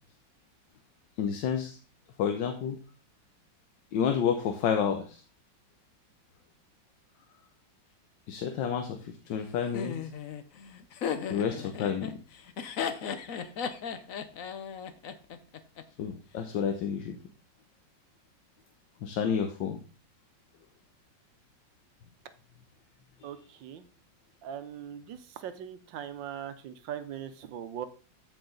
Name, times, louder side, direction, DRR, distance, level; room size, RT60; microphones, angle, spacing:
voice 1, 1.2-1.8 2.2-2.8 3.9-5.2 8.3-10.0 11.3-12.2 16.0-17.2 19.0-19.8, left 7 dB, 75° left, 6 dB, 1.6 m, -30 dB
Laughter, 9.7-15.8, left 7 dB, 55° left, 1.0 m, -36 dB
voice 2, 23.2-23.9 24.4-27.9, right 9 dB, 75° right, 11 dB, 1.5 m, -40 dB
13.5 x 4.9 x 3.9 m, 0.36 s
omnidirectional pair, 2.0 m